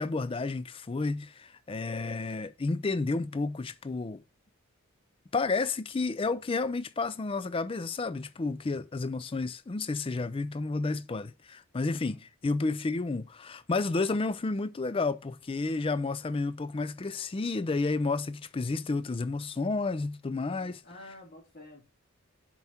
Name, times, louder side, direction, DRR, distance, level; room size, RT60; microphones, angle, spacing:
voice 1, 0.0-4.2 5.3-20.8, left 3 dB, 25° left, 0.4 m, -31 dB
voice 2, 11.9-12.3 20.5-21.9, left 1 dB, 40° left, 3.4 m, -50 dB
7.1 x 4.5 x 4.3 m
head